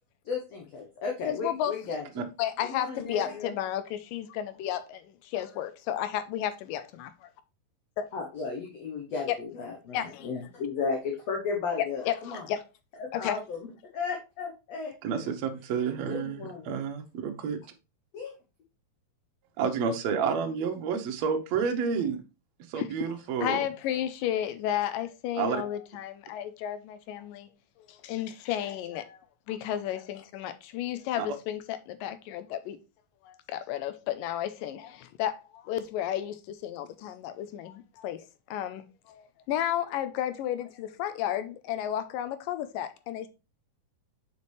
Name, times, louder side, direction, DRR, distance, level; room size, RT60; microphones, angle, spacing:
voice 1, 0.2-2.0 2.6-3.5 8.1-12.5 13.0-13.6 13.9-14.9 16.1-16.7 18.1-18.3, left 4 dB, 65° left, 1.7 m, -34 dB
voice 2, 1.3-1.7 2.4-7.3 8.0-8.1 9.3-9.4 9.9-10.3 11.8-12.6 13.1-13.4 22.8-22.9 23.4-27.5 27.9-29.2 29.5-32.8 33.2-38.3 38.5-43.3, left 11 dB, 80° left, 2.3 m, -33 dB
voice 3, 15.0-17.6 19.6-22.2 22.7-23.6 25.3-25.6 31.2-31.3, right 6 dB, 70° right, 1.7 m, -30 dB
6.8 x 5.3 x 3.2 m
omnidirectional pair, 4.0 m